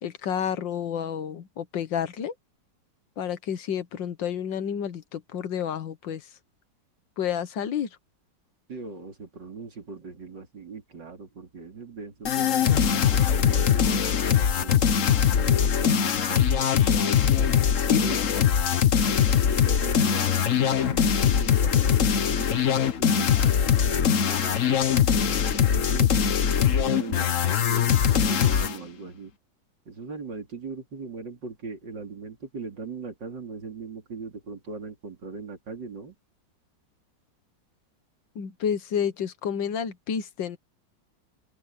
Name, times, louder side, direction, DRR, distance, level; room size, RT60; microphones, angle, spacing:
voice 1, 0.0-2.4 3.2-6.3 7.2-7.9 17.8-18.2 38.4-40.6, left 8 dB, 85° left, 1.9 m, -30 dB
voice 2, 8.7-14.8 15.4-17.0 17.9-18.2 19.5-24.8 25.5-29.3 29.9-36.2, right 4 dB, 75° right, 3.9 m, -40 dB
sound 1, 12.3-28.8, left 8 dB, 50° left, 1.2 m, -22 dB
open air
omnidirectional pair, 1.9 m